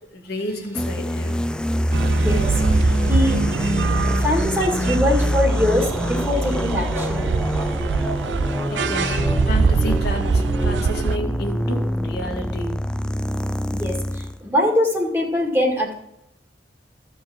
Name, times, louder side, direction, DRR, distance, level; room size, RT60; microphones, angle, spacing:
voice 1, 0.1-1.4 8.7-12.8, left 1 dB, 60° left, 1 dB, 1.8 m, -31 dB
sound 1, 0.8-14.4, equal, 5° left, 0.3 m, -24 dB
sound 2, 1.9-11.2, right 5 dB, 90° right, 0.4 m, -24 dB
voice 2, 2.1-2.6 3.1-3.4 4.2-7.4 9.0-9.3 13.7-15.9, left 1 dB, 15° right, 0 dB, 2.0 m, -23 dB
14.0 x 4.7 x 7.7 m, 0.83 s
head